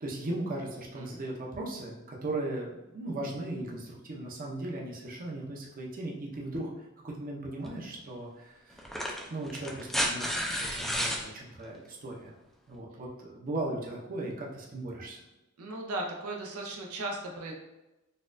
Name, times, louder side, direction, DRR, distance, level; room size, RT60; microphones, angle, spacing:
voice 1, 0.0-6.7 7.0-8.8 9.3-12.3 12.7-15.2, right 2 dB, 40° right, -3 dB, 0.6 m, -37 dB
sound 1, 7.6-7.8 8.8-11.2 12.7-12.8, equal, ahead, 0.4 m, -31 dB
voice 2, 15.6-17.5, right 2 dB, 85° right, 1 dB, 0.6 m, -37 dB
4.1 x 2.3 x 2.5 m, 1.0 s
head